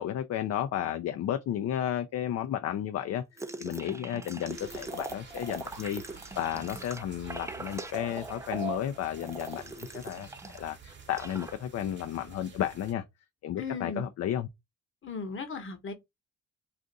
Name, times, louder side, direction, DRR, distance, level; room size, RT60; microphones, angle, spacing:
voice 1, 0.0-3.2 3.6-6.0 6.4-10.3 10.5-13.0 13.4-14.5, left 11 dB, 60° left, 0.5 m, -33 dB
sound 1, 3.4-10.7 10.9-11.5, right 2 dB, 10° right, 0.4 m, -40 dB
sound 2, 4.5-12.9, right 6 dB, 35° right, 1.0 m, -51 dB
voice 2, 13.6-14.1 15.0-15.9, left 4 dB, 40° left, 1.0 m, -36 dB
2.5 x 2.5 x 3.8 m
cardioid pair, 90°, 30 cm